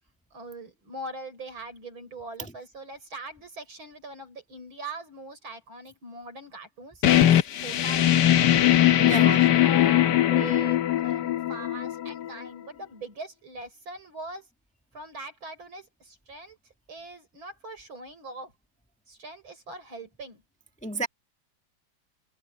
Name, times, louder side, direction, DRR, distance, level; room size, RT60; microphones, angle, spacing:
voice 1, 0.3-8.3 9.0-14.5 14.9-16.6 16.9-18.5 19.1-20.4, right 2 dB, 80° right, 7.0 m, -41 dB
sound 1, 7.0-12.5, left 12 dB, 65° left, 1.4 m, -21 dB
voice 2, 9.0-9.4 20.8-21.1, right 2 dB, 5° left, 1.5 m, -30 dB
omnidirectional pair, 2.2 m